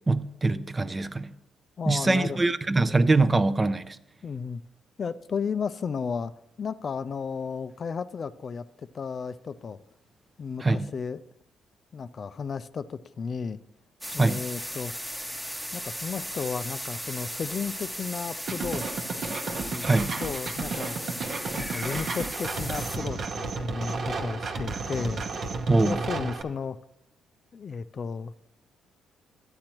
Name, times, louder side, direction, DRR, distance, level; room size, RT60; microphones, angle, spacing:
voice 1, 0.1-1.3 1.9-4.0 10.6-10.9 14.2-14.4 19.9-20.1 25.7-26.0, right 3 dB, 25° right, 13 dB, 0.5 m, -23 dB
voice 2, 1.8-2.4 4.2-4.6 5.0-6.3 6.6-8.6 8.9-9.8 10.4-11.2 11.9-13.6 14.1-15.0 15.7-18.8 19.3-19.4 19.7-19.9 20.2-21.3 21.5-25.3 25.8-26.8 27.5-28.3, left 6 dB, 45° left, 14 dB, 0.3 m, -33 dB
sound 1, 14.0-23.0, equal, 5° right, 0.9 m, -36 dB
sound 2, 18.5-26.4, right 3 dB, 55° right, 0.9 m, -33 dB
11.5 x 8.6 x 3.0 m, 0.82 s
cardioid pair, 90°, 0 cm